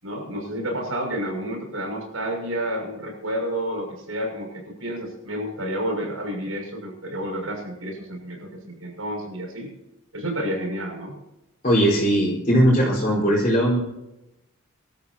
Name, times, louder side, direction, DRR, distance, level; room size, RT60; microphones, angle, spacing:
voice 1, 0.0-9.7 10.1-11.2, equal, 85° right, 2 dB, 6.6 m, -30 dB
voice 2, 11.6-13.8, equal, 40° left, -7 dB, 4.6 m, -19 dB
25.5 x 13.0 x 2.9 m, 0.92 s
head